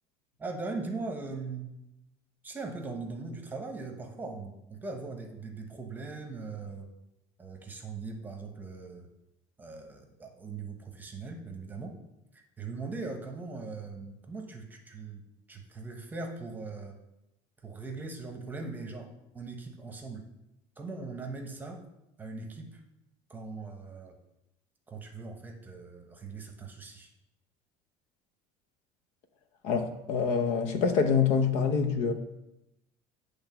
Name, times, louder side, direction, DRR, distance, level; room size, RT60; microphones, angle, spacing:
voice 1, 0.4-1.7 2.4-6.9 7.4-9.1 9.6-12.0 12.3-15.2 15.5-17.0 17.6-20.3 20.8-21.8 22.2-22.8 23.3-24.2 24.9-27.1, right 3 dB, 15° right, 0.9 m, -40 dB
voice 2, 29.6-32.1, left 6 dB, 65° left, 0.8 m, -26 dB
8.8 x 3.4 x 5.8 m
cardioid pair, 145°, 13 cm